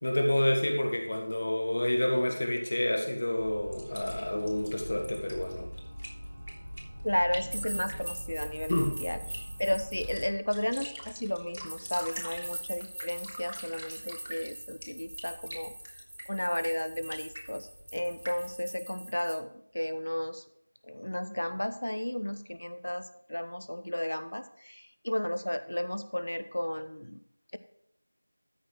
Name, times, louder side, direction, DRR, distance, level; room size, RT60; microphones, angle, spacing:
voice 1, 0.0-5.7 8.7-8.9, left 1 dB, 40° left, 3 dB, 1.7 m, -29 dB
sound 1, 3.4-10.3, equal, 25° right, 2.4 m, -43 dB
sound 2, 3.7-18.5, equal, 70° right, 3.3 m, -46 dB
voice 2, 7.0-15.7 16.3-20.4 20.9-27.2, left 1 dB, 65° left, 11 dB, 1.0 m, -33 dB
sound 3, 7.5-10.2 11.7-19.3, right 1 dB, 55° right, 4.0 m, -43 dB
13.0 x 4.7 x 6.0 m, 0.70 s
figure-of-eight pair, 175°, 0 cm